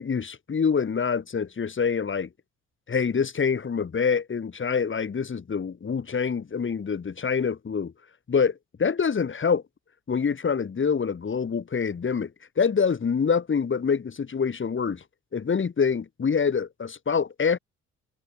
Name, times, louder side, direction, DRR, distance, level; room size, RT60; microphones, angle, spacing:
voice 1, 0.0-2.3 2.9-7.9 8.3-9.6 10.1-12.3 12.6-15.0 15.3-17.6, left 6 dB, 40° left, 7.5 m, -25 dB
cardioid pair, 90°, 30 cm